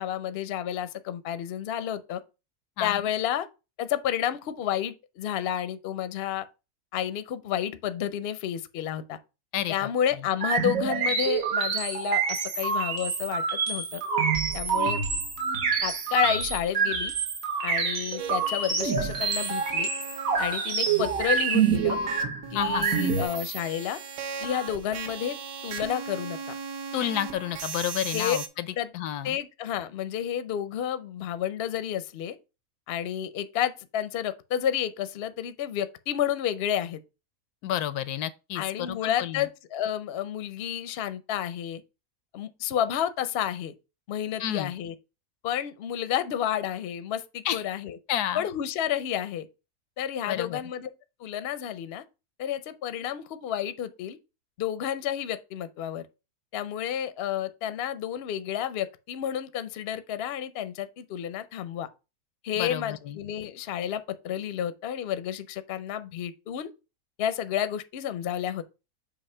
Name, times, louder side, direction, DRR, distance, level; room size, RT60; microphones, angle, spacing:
voice 1, 0.0-2.2 2.8-3.5 3.8-6.4 6.9-9.2 9.7-14.0 14.5-15.0 15.8-17.1 17.6-19.9 20.4-22.0 22.5-24.0 24.4-25.4 25.6-26.4 28.1-28.4 28.8-28.9 29.2-32.4 32.9-37.0 38.5-41.8 42.3-43.7 44.1-44.9 45.4-48.0 48.3-49.5 50.0-50.9 51.2-52.0 52.4-54.2 54.6-56.0 56.5-61.9 62.4-66.7 67.2-68.6, left 10 dB, 55° left, 0.7 m, -30 dB
voice 2, 9.5-9.9 22.5-22.9 26.9-28.7 28.9-29.4 37.6-39.5 44.4-44.7 47.4-47.6 48.1-48.4 50.3-50.6 62.6-63.2, left 11 dB, 80° left, 1.1 m, -30 dB
sound 1, 10.4-23.2, right 5 dB, 65° right, 1.6 m, -27 dB
sound 2, 18.2-28.5, right 6 dB, 90° right, 1.4 m, -38 dB
7.0 x 2.8 x 5.4 m
omnidirectional pair, 1.6 m